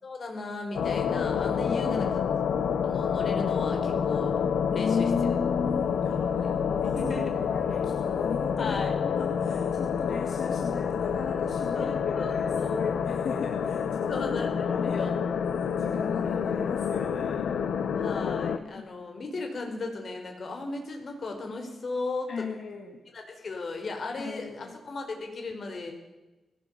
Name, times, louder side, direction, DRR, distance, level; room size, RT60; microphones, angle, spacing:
voice 1, 0.0-2.2 2.8-4.4 4.7-5.4 6.8-7.5 8.5-8.9 11.7-12.8 14.1-15.1 17.9-22.5 23.1-25.9, left 3 dB, 45° left, 3 dB, 4.9 m, -36 dB
sound 1, 0.7-18.6, left 7 dB, 90° left, 1.4 m, -28 dB
voice 2, 1.7-2.2 4.7-7.0 7.5-14.2 14.6-15.0 15.6-17.5 18.8-18.9 22.3-23.0 24.2-24.7, left 5 dB, 60° left, 3 dB, 2.5 m, -36 dB
20.0 x 18.0 x 8.5 m, 1.1 s
wide cardioid pair, 150°, 0 cm